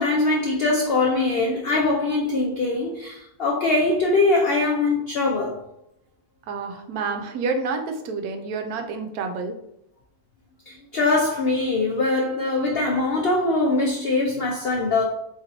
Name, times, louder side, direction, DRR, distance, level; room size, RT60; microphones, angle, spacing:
voice 1, 0.0-5.6 10.7-15.0, left 2 dB, 75° left, -1 dB, 0.5 m, -22 dB
voice 2, 6.5-9.6, right 4 dB, 85° right, 5 dB, 1.1 m, -29 dB
3.0 x 2.9 x 3.9 m, 0.80 s
omnidirectional pair, 1.6 m